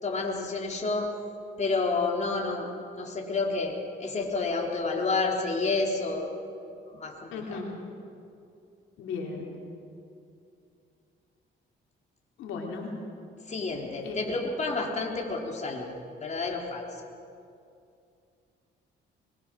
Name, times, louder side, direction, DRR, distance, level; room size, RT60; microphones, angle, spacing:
voice 1, 0.0-1.1 1.6-2.7 3.0-6.3 6.9-7.1 7.5-7.6 13.5-15.9 16.2-16.8, left 3 dB, 35° left, -1 dB, 4.1 m, -29 dB
voice 2, 7.3-7.7 9.0-9.5 12.4-12.9 14.0-14.3, left 4 dB, 90° left, 0 dB, 3.2 m, -36 dB
23.5 x 22.5 x 6.4 m, 2.6 s
cardioid pair, 90°, 20 cm